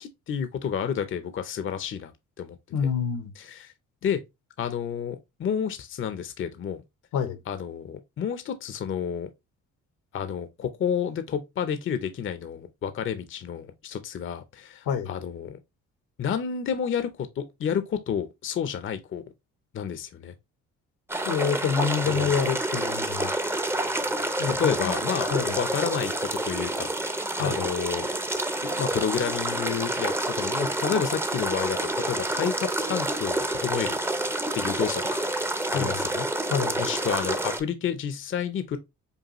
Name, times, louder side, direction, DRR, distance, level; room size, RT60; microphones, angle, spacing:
voice 1, 0.0-2.1 2.4-2.6 3.4-3.7 4.0-4.2 4.6-6.8 7.5-9.3 10.1-15.6 16.2-19.2 19.7-20.3 22.0-22.4 24.4-25.3 25.6-28.1 28.6-34.0 34.5-35.2 35.7-36.3 36.8-38.8, left 8 dB, 45° left, 0.6 m, -30 dB
voice 2, 2.7-3.3 7.1-7.4 14.9-15.1 21.2-23.3 24.4-24.9 25.3-25.6 27.4-27.6 35.7-36.0 36.5-36.8, left 7 dB, 80° left, 0.9 m, -27 dB
sound 1, 21.1-37.6, right 1 dB, 10° right, 0.6 m, -28 dB
5.3 x 2.3 x 2.9 m
cardioid pair, 90°, 30 cm